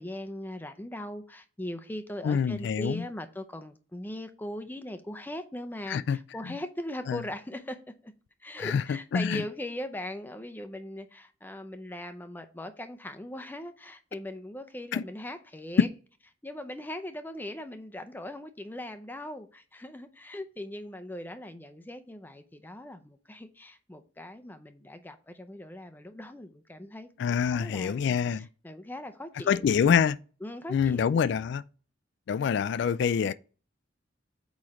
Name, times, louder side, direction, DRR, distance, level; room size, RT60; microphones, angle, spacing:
voice 1, 0.0-8.1 8.4-15.9 16.4-30.0 30.4-31.2, left 1 dB, 10° left, 0.5 m, -40 dB
voice 2, 2.2-3.1 5.9-6.2 7.1-7.2 8.6-8.8 9.1-9.4 14.9-15.0 15.8-15.9 27.2-28.5 29.5-30.2 30.7-31.6 32.3-33.3, left 7 dB, 60° left, 0.3 m, -25 dB
8.6 x 3.2 x 4.9 m
head